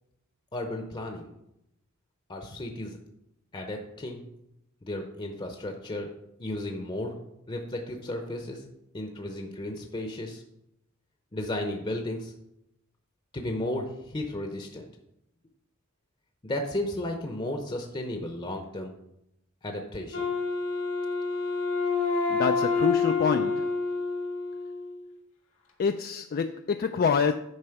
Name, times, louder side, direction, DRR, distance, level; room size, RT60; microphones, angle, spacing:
voice 1, 0.5-1.3 2.3-3.0 3.5-4.2 4.8-6.1 6.4-7.2 7.5-8.6 8.9-10.4 11.3-12.3 13.3-14.9 16.4-18.9 19.6-20.3, left 1 dB, 25° left, 0.7 m, -34 dB
Wind instrument woodwind instrument, 20.1-25.1, left 4 dB, 85° left, 2.1 m, -28 dB
voice 2, 22.3-23.8 25.8-27.3, left 6 dB, 45° left, 0.3 m, -26 dB
9.8 x 4.3 x 5.8 m
head